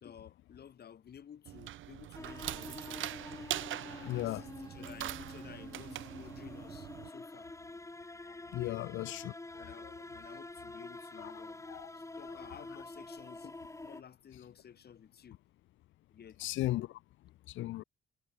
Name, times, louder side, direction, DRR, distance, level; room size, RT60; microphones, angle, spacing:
voice 1, 0.0-3.2 4.0-7.5 8.6-8.8 9.6-11.7 11.9-15.4 16.1-16.5, left 8 dB, 55° left, 2.7 m, -54 dB
sound 1, 1.5-7.1, right 13 dB, 75° right, 1.8 m, -42 dB
sound 2, 2.1-14.0, left 2 dB, 15° left, 3.7 m, -47 dB
voice 2, 3.9-4.4 8.5-9.3 11.7-11.9 16.4-16.9 17.6-17.8, left 16 dB, 75° left, 0.5 m, -35 dB
cardioid pair, 90°, 20 cm